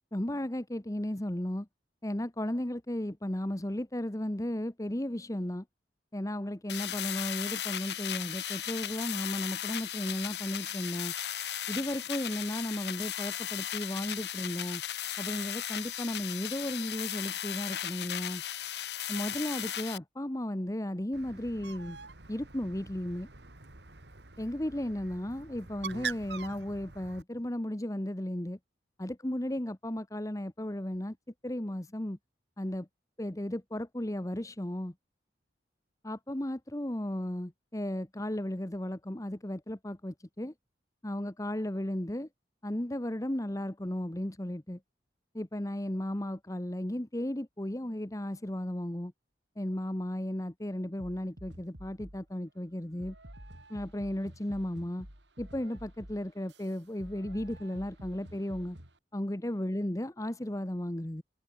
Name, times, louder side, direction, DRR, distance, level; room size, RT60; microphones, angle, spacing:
voice 1, 0.1-1.7 2.0-5.6 6.1-11.1 11.7-14.8 15.2-18.4 19.1-22.0 22.3-23.3 24.4-28.6 29.0-31.2 31.4-32.2 32.6-32.9 33.2-34.9 36.1-40.5 41.0-42.3 42.6-44.8 45.3-49.1 49.6-53.1 53.7-55.1 55.4-58.8 59.1-61.2, left 1 dB, 20° left, 1.1 m, -35 dB
sound 1, 6.7-20.0, left 11 dB, 65° left, 1.7 m, -36 dB
Bird, 21.1-27.2, right 5 dB, 70° right, 2.6 m, -44 dB
sound 2, 51.0-52.3 53.0-59.0, equal, 85° right, 7.6 m, -50 dB
head